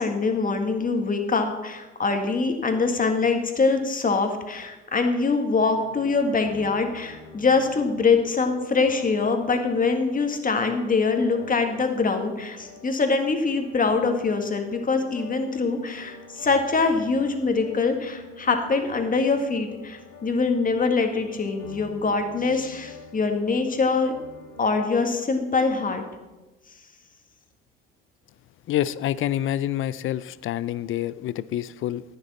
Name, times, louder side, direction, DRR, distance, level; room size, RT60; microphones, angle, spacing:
voice 1, 0.0-24.1 24.6-26.0, left 4 dB, 25° left, 5 dB, 1.8 m, -24 dB
sound 1, 5.8-24.7, left 3 dB, 85° left, 1.8 m, -47 dB
voice 2, 28.7-32.0, left 12 dB, 45° left, 18 dB, 0.4 m, -27 dB
11.0 x 9.6 x 4.2 m, 1.1 s
hypercardioid pair, 70°, 30 cm